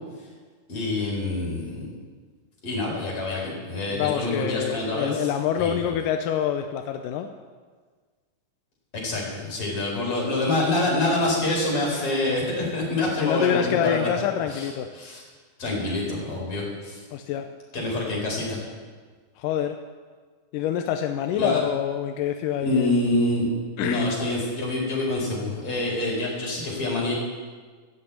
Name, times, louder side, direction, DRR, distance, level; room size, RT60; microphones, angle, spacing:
voice 1, 0.7-1.9 2.6-5.3 5.6-6.0 8.9-14.7 14.9-15.2 15.6-17.0 17.7-18.6 21.4-21.6 22.6-23.5 23.8-27.1, left 2 dB, 45° left, -3 dB, 5.2 m, -26 dB
voice 2, 3.9-7.3 13.1-14.9 17.1-17.5 19.4-19.8 20.5-22.9 23.8-24.1, left 9 dB, 85° left, 6 dB, 2.3 m, -26 dB
13.5 x 9.0 x 8.5 m, 1.5 s
omnidirectional pair, 3.7 m